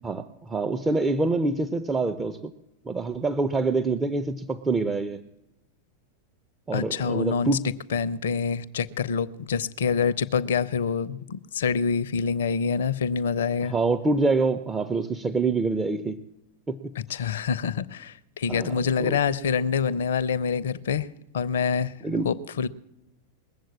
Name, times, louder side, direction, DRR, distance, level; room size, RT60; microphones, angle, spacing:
voice 1, 0.0-2.5 2.8-5.2 6.7-7.6 13.7-16.2 16.7-16.8 18.5-18.7 19.0-19.2 22.0-22.3, right 3 dB, 15° right, 0.7 m, -26 dB
voice 2, 6.7-7.6 7.9-13.7 17.1-21.1 21.3-21.9 22.2-22.7, left 6 dB, 60° left, 0.7 m, -26 dB
21.0 x 7.7 x 8.6 m
figure-of-eight pair, 90°, 0 cm